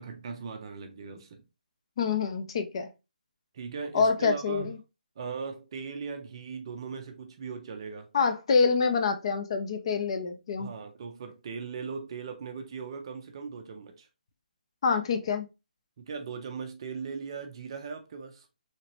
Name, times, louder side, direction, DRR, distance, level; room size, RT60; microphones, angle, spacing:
voice 1, 0.0-1.4 3.5-4.7 5.2-8.1 10.6-14.1 16.0-18.5, right 5 dB, 30° right, 0.4 m, -39 dB
voice 2, 2.0-2.9 3.9-4.8 8.1-10.7 14.8-15.5, left 5 dB, 35° left, 0.5 m, -26 dB
3.2 x 2.8 x 2.9 m
hypercardioid pair, 160°, 5 cm